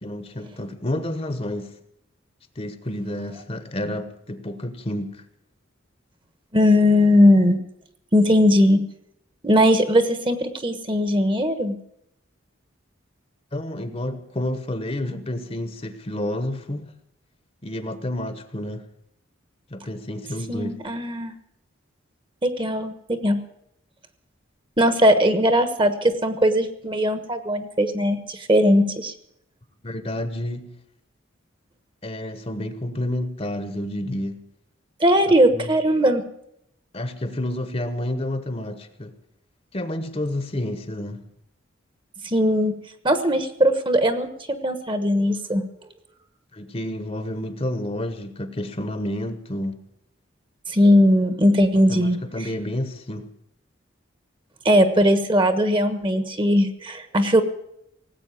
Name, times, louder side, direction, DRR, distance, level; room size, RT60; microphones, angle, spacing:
voice 1, 0.0-1.7 2.6-5.2 13.5-16.9 17.6-18.8 19.7-20.8 29.8-30.8 32.0-34.4 35.3-35.7 36.9-39.1 39.7-41.3 46.5-49.8 51.9-53.3, left 1 dB, 30° left, 1.1 m, -30 dB
voice 2, 6.5-7.6 8.1-8.8 9.4-11.8 20.5-21.3 22.4-23.4 24.8-29.1 35.0-36.2 42.2-42.7 43.0-45.6 50.7-52.2 54.6-57.4, equal, 25° right, 1.2 m, -19 dB
18.0 x 8.3 x 8.4 m
head